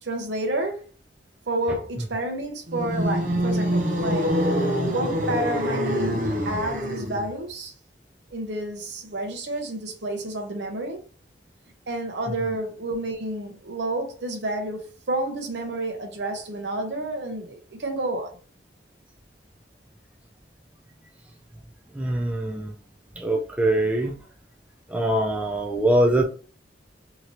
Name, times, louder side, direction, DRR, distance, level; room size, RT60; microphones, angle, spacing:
voice 1, 0.0-0.9 1.5-4.3 4.9-7.7 8.3-11.0 11.9-18.4, right 2 dB, 75° right, 0.8 m, -30 dB
sound 1, 2.7-7.3, equal, 45° right, 0.8 m, -25 dB
voice 2, 21.9-22.7 23.2-24.2 24.9-26.2, right 1 dB, 5° right, 0.3 m, -23 dB
2.9 x 2.6 x 3.0 m
head